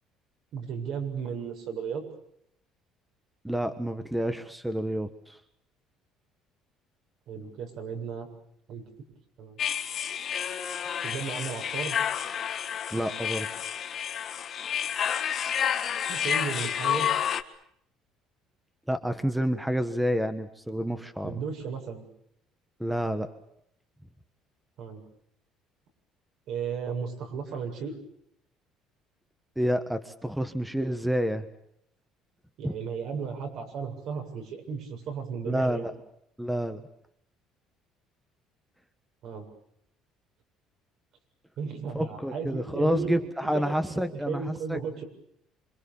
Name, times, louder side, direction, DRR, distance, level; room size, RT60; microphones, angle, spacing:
voice 1, 0.5-2.1 7.3-8.3 8.7-9.1 9.4-9.6 11.0-12.0 16.1-17.1 21.2-22.0 24.8-25.0 26.5-27.9 32.6-35.9 39.2-39.5 41.6-45.0, right 6 dB, 65° right, 4 dB, 7.5 m, -35 dB
voice 2, 3.4-5.4 12.9-13.6 18.9-21.4 22.8-23.3 29.5-31.4 32.6-32.7 35.4-35.9 36.4-36.9 41.9-44.8, equal, 5° right, 10 dB, 1.4 m, -29 dB
sound 1, 9.6-17.4, left 9 dB, 45° left, 1.8 m, -30 dB
27.0 x 25.0 x 7.2 m, 0.73 s
cardioid pair, 130°, 0 cm